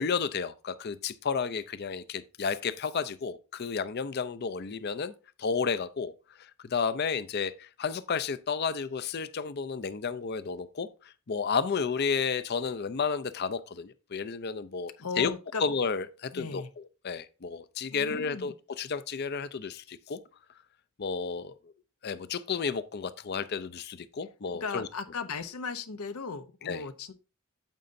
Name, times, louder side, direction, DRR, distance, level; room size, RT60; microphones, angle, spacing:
voice 1, 0.0-5.1 5.4-6.1 6.4-10.9 11.3-15.3 15.6-16.6 17.0-20.2 21.0-21.5 22.0-24.9 26.7-26.8, left 5 dB, 50° left, 0.5 m, -32 dB
voice 2, 15.0-15.7 16.3-16.7 17.9-18.5 24.6-27.1, left 5 dB, 85° left, 0.7 m, -37 dB
9.0 x 7.7 x 2.6 m
head